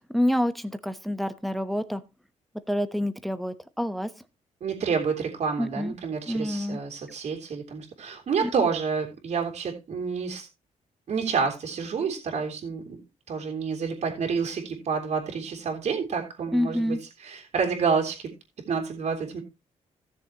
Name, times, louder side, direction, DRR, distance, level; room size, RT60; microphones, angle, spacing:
voice 1, 0.1-2.0 2.7-4.1 5.6-5.9 6.3-6.8 8.4-8.5 16.5-17.0, equal, ahead, 10 dB, 1.0 m, -27 dB
voice 2, 4.6-10.5 11.1-13.0 13.3-18.3 18.7-19.4, right 5 dB, 60° right, 1 dB, 3.2 m, -29 dB
17.0 x 7.1 x 3.0 m, 0.25 s
cardioid pair, 125°, 13 cm